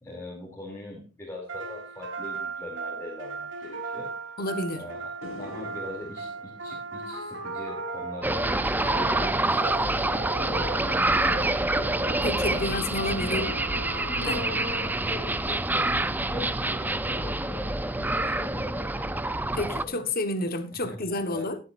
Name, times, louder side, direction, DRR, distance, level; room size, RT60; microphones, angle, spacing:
voice 1, 0.0-4.1 4.8-5.1 5.4-11.9 12.5-13.6 14.2-20.1 20.7-21.5, left 1 dB, 15° left, 3.0 m, -41 dB
sound 1, 1.5-15.3, right 3 dB, 65° right, 3.5 m, -37 dB
voice 2, 4.4-4.8 12.2-13.6 14.2-14.5 19.6-21.6, left 2 dB, 50° left, 1.4 m, -30 dB
sound 2, 5.2-11.7, left 3 dB, 80° left, 1.8 m, -49 dB
sound 3, 8.2-19.8, right 2 dB, 10° right, 0.6 m, -27 dB
19.5 x 7.9 x 2.6 m
head